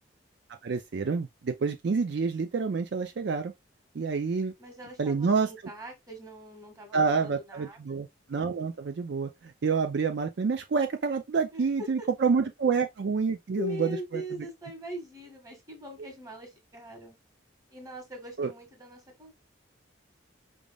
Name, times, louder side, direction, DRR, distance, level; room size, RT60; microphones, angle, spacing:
voice 1, 0.6-3.5 3.9-4.5 5.0-5.5 6.9-14.2 18.4-18.5, right 5 dB, 60° right, 0.4 m, -28 dB
voice 2, 4.6-7.9 11.5-12.1 13.5-17.2 17.7-19.3, left 1 dB, 20° right, 1.7 m, -41 dB
5.1 x 3.5 x 2.3 m
head